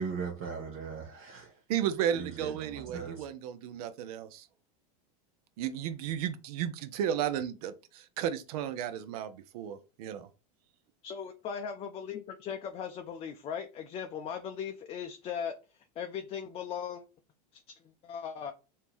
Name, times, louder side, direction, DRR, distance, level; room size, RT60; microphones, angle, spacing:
voice 1, 0.0-1.6 2.1-3.2, right 5 dB, 50° right, 1.2 m, -38 dB
voice 2, 1.7-4.5 5.6-10.3, right 9 dB, 75° right, 0.6 m, -34 dB
voice 3, 11.0-15.5 16.0-17.0 17.5-18.5, left 7 dB, 30° left, 0.5 m, -38 dB
3.6 x 2.8 x 4.5 m
supercardioid pair, 125°, 19 cm